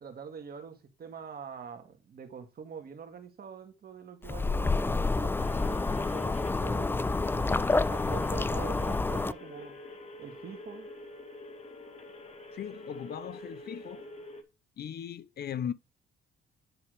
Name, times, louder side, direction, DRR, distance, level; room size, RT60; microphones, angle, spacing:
voice 1, 0.0-9.8 10.2-10.9, right 6 dB, 50° right, 1.8 m, -45 dB
sound 1, 4.2-9.3, left 3 dB, 10° left, 0.3 m, -28 dB
sound 2, 5.4-14.4, left 2 dB, 35° left, 1.4 m, -47 dB
voice 2, 12.5-14.1 14.8-15.7, left 9 dB, 55° left, 0.6 m, -38 dB
9.8 x 3.6 x 4.8 m
cardioid pair, 90°, 20 cm